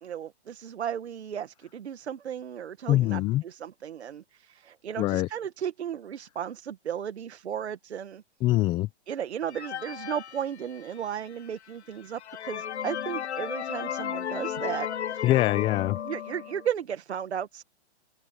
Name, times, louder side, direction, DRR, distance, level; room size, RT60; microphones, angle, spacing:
voice 1, 0.0-8.2 9.1-15.3 16.0-17.6, right 9 dB, 80° right, 1.7 m, -35 dB
voice 2, 2.9-3.4 5.0-5.3 8.4-8.9 15.2-16.0, left 16 dB, 15° left, 0.5 m, -23 dB
sound 1, 9.5-11.1 11.7-11.8 12.1-16.7, left 9 dB, 80° left, 1.1 m, -34 dB
open air
hypercardioid pair, 145°, 33 cm